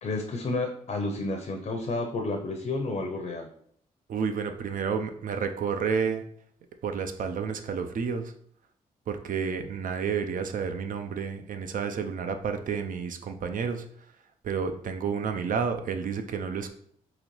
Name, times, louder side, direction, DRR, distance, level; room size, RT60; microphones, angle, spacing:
voice 1, 0.0-3.5, left 2 dB, 50° left, 4 dB, 0.6 m, -31 dB
voice 2, 4.1-6.2 6.8-8.3 9.1-13.8 14.4-16.7, right 6 dB, 60° right, 7 dB, 0.5 m, -30 dB
3.9 x 3.0 x 3.0 m, 0.64 s
cardioid pair, 60°, 15 cm